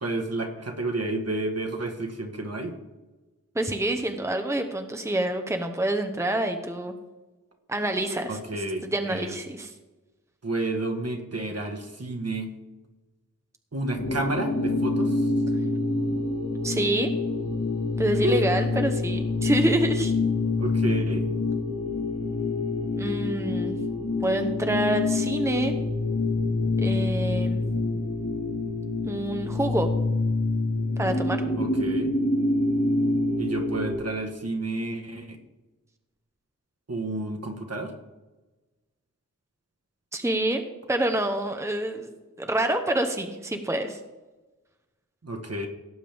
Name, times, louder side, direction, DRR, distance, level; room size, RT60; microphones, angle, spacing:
voice 1, 0.0-2.7 8.3-9.3 10.4-12.5 13.7-15.3 18.2-18.4 20.6-21.3 31.6-32.1 33.3-35.4 36.9-37.9 45.2-45.7, right 2 dB, 50° right, 3 dB, 1.6 m, -30 dB
voice 2, 3.5-6.9 7.7-9.7 16.6-17.1 18.0-20.1 23.0-25.7 26.8-27.6 29.0-29.9 31.0-31.4 40.1-42.1 42.4-44.0, right 1 dB, 10° right, 5 dB, 0.9 m, -27 dB
sound 1, 14.0-33.9, left 2 dB, 70° left, 2.8 m, -26 dB
17.5 x 7.5 x 3.5 m, 1.2 s
wide cardioid pair, 50°, 32 cm